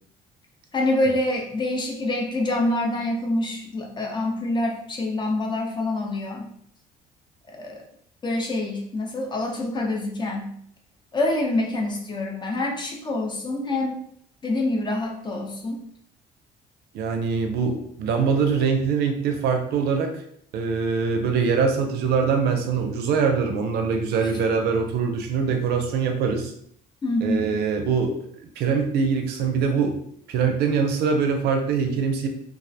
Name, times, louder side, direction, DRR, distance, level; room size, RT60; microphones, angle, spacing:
voice 1, 0.7-6.5 7.5-7.8 8.2-10.5 11.1-14.0 14.4-15.8 27.0-27.5, left 2 dB, 25° left, 1 dB, 0.5 m, -26 dB
voice 2, 16.9-20.2 20.5-26.5 27.2-28.2 28.6-30.0 30.3-32.3, right 5 dB, 70° right, 5 dB, 0.4 m, -23 dB
2.3 x 2.0 x 2.6 m, 0.66 s
cardioid pair, 110°, 17 cm